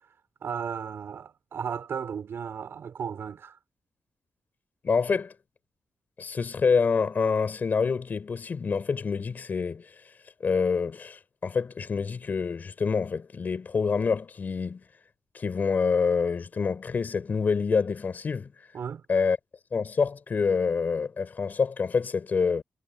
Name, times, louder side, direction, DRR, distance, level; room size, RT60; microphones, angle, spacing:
voice 1, 0.4-3.6 18.7-19.0, right 7 dB, 60° right, 4.4 m, -35 dB
voice 2, 4.8-5.3 6.2-9.8 10.4-14.8 15.3-18.5 19.1-19.4 19.7-22.6, left 5 dB, 40° left, 5.1 m, -26 dB
wide cardioid pair, 175°, 5 cm